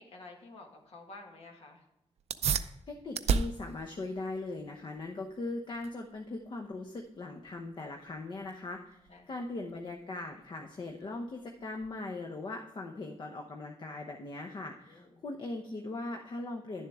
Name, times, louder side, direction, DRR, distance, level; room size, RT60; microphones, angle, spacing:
voice 1, 0.0-1.8 9.1-9.3 14.9-15.2, left 3 dB, 70° left, 2 dB, 1.8 m, -51 dB
sound 1, 2.2-12.2, right 6 dB, 80° right, 0.5 m, -38 dB
voice 2, 2.6-9.0 9.3-16.9, left 2 dB, 45° left, 3 dB, 0.9 m, -40 dB
10.5 x 7.3 x 3.6 m, 0.87 s
wide cardioid pair, 140°, 11 cm